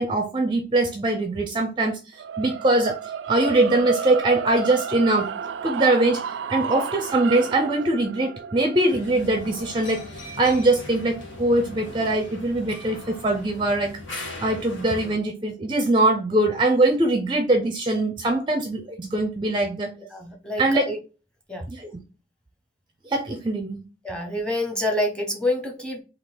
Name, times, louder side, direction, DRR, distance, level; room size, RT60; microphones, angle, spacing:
voice 1, 0.0-2.0 2.4-3.0 3.3-5.3 5.6-6.2 6.5-10.0 10.4-19.9 20.6-20.9 21.7-22.0 23.0-23.8, right 2 dB, 25° right, 5 dB, 0.5 m, -22 dB
sound 1, 2.2-12.4, right 7 dB, 80° right, 0.3 m, -33 dB
sound 2, 8.9-15.2, left 2 dB, 90° left, 1.4 m, -39 dB
voice 2, 20.1-21.0 21.5-21.6 24.0-26.0, left 1 dB, 5° left, 1 dB, 0.9 m, -27 dB
3.8 x 2.8 x 4.2 m, 0.33 s
head